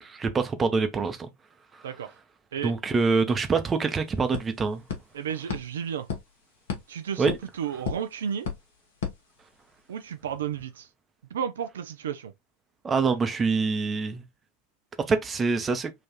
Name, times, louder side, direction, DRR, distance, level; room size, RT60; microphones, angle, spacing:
voice 1, 0.0-1.2 2.6-4.8 7.2-7.3 12.8-14.2 15.1-15.9, right 4 dB, 20° right, 0.7 m, -25 dB
sound 1, 3.3-3.4 3.5-10.0, left 6 dB, 65° left, 1.1 m, -38 dB
voice 2, 5.1-6.1 6.9-8.5 9.9-10.9 11.3-12.3, right 8 dB, 70° right, 0.4 m, -32 dB
3.9 x 2.5 x 2.9 m
figure-of-eight pair, 85°, 0 cm